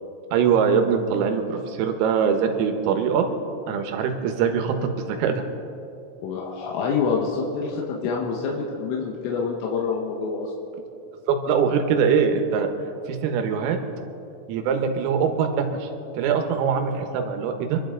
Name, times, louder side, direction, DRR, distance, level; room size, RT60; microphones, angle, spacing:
voice 1, 0.3-3.3 3.7-5.4 11.3-12.7 13.1-13.8 14.5-15.9 16.2-17.8, right 6 dB, 90° right, 5 dB, 3.8 m, -22 dB
voice 2, 6.2-10.5, left 5 dB, 85° left, -1 dB, 3.9 m, -26 dB
25.5 x 12.0 x 3.8 m, 2.7 s
omnidirectional pair, 5.8 m